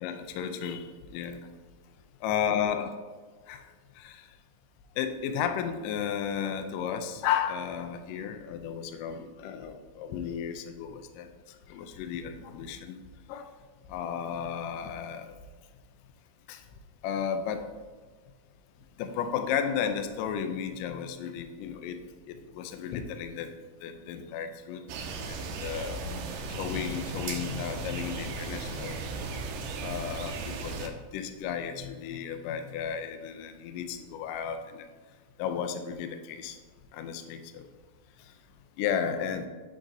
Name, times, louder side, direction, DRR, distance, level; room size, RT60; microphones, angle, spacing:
voice 1, 0.0-1.5 2.2-2.9 3.5-4.3 5.0-13.0 13.3-13.5 13.9-15.3 16.5-16.7 17.0-17.6 19.0-22.0 22.3-23.5 23.8-24.8 25.2-29.0 29.8-34.9 35.4-36.6 36.9-37.7 38.2-38.3 38.8-39.5, left 8 dB, 80° left, 8 dB, 2.0 m, -34 dB
sound 1, 24.9-30.9, right 4 dB, 80° right, 1.9 m, -36 dB
8.5 x 5.2 x 2.7 m, 1.4 s
omnidirectional pair, 4.2 m